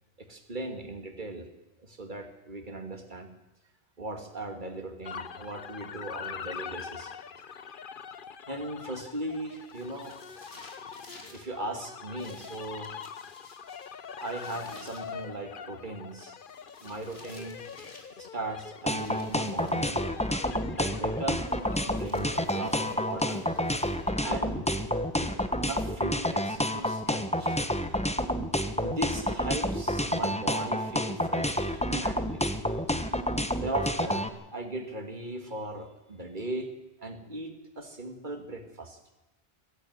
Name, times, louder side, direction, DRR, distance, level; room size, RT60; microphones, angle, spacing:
voice 1, 0.2-1.5 1.8-3.3 4.0-7.5 8.5-10.2 11.3-12.9 14.2-16.4 16.8-17.7 18.2-20.0 20.7-23.4 24.2-24.7 25.2-25.3 25.7-27.6 28.8-32.8 33.5-36.7 37.0-39.0, right 2 dB, 45° right, 6 dB, 2.5 m, -38 dB
sound 1, 5.0-24.5, left 7 dB, 55° left, 1.0 m, -44 dB
sound 2, 9.5-11.5 12.2-15.1 16.4-18.2 18.9-19.9 21.5-24.3, left 2 dB, 70° left, 3.6 m, -54 dB
sound 3, 18.9-34.3, equal, 5° left, 1.0 m, -29 dB
21.0 x 13.0 x 9.6 m, 1.0 s
omnidirectional pair, 1.1 m